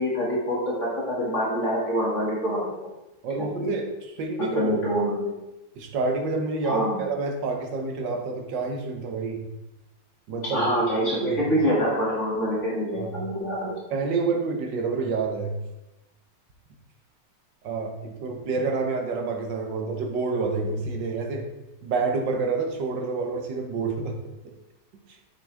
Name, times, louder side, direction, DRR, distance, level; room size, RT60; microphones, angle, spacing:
voice 1, 0.0-2.9 3.4-3.7 4.4-5.2 6.6-7.0 10.5-13.8, equal, 40° left, -6 dB, 2.4 m, -26 dB
voice 2, 3.2-4.8 5.7-9.4 10.3-10.7 11.0-11.4 12.9-13.1 13.9-15.6 17.6-21.4 21.8-24.1, right 4 dB, 80° right, 3 dB, 1.7 m, -28 dB
7.4 x 6.3 x 3.4 m, 0.98 s
omnidirectional pair, 2.0 m